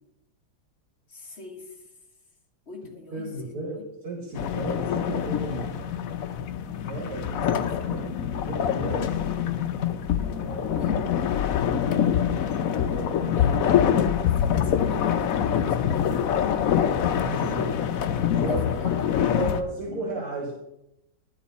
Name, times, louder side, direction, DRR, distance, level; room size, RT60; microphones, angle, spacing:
voice 1, 1.1-1.7 2.7-3.6 7.2-7.7 10.7-11.0 13.3-16.7 18.3-20.0, left 5 dB, 35° left, 1 dB, 1.6 m, -40 dB
voice 2, 3.1-5.9 6.8-7.4 7.9-9.2 10.4-10.9 12.9-13.6 17.1-17.8 18.4-18.6 19.0-20.5, right 2 dB, 85° right, -1 dB, 2.7 m, -34 dB
sound 1, 4.4-19.6, left 9 dB, 75° left, 0.8 m, -25 dB
12.0 x 9.1 x 4.2 m, 0.86 s
omnidirectional pair, 2.3 m